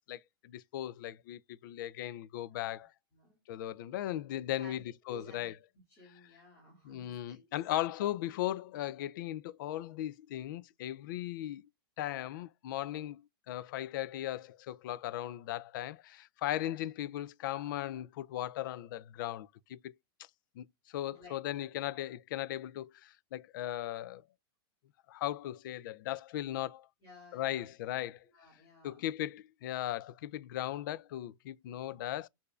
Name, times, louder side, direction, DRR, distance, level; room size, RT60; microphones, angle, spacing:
voice 1, 0.1-2.9 3.5-5.5 6.8-11.6 12.0-19.9 20.6-24.2 25.1-26.9 27.3-28.2 28.8-32.3, left 13 dB, 55° left, 0.3 m, -37 dB
voice 2, 2.5-2.8 3.1-3.4 4.6-4.8 5.1-5.5 5.9-7.5 21.1-21.4 21.9-22.0 27.0-28.0 28.3-29.1 31.7-32.0, equal, 25° left, 2.1 m, -56 dB
6.6 x 2.6 x 2.3 m
supercardioid pair, 165°, 13 cm